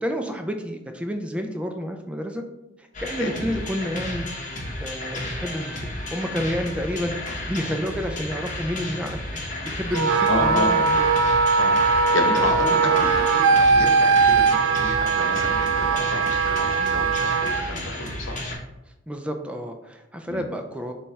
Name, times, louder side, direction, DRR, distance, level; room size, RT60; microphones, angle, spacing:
voice 1, 0.0-2.4 2.8-4.3 4.8-7.1 7.5-11.1 19.1-20.9, equal, 5° right, 4 dB, 0.3 m, -30 dB
sound 1, 2.9-18.6, left 1 dB, 40° left, 0.8 m, -33 dB
Wind instrument woodwind instrument, 9.9-17.6, right 4 dB, 85° right, 0.3 m, -20 dB
voice 2, 10.3-10.7 11.5-11.7 12.1-18.4 20.3-20.4, left 1 dB, 75° left, 3 dB, 0.9 m, -30 dB
6.7 x 2.3 x 3.2 m, 0.98 s
head